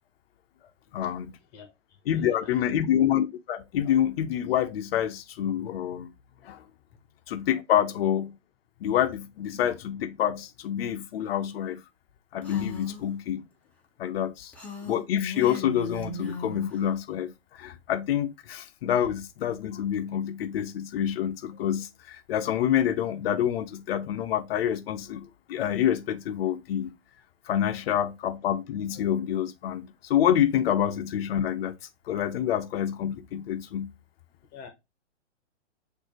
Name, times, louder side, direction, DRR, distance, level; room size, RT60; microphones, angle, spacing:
voice 1, 0.9-1.3 2.1-6.1 6.4-6.6 7.3-8.4 8.8-11.8 12.3-13.4 14.0-14.5 14.8-26.9 27.5-31.8 32.1-33.9, left 10 dB, 55° left, 0.8 m, -27 dB
voice 2, 2.1-2.8 34.5-34.7, left 6 dB, 25° left, 1.1 m, -46 dB
Female speech woman speaking, 12.4-13.0 14.5-16.8, left 2 dB, 5° left, 0.9 m, -37 dB
6.3 x 2.8 x 2.8 m
hypercardioid pair, 140°, 36 cm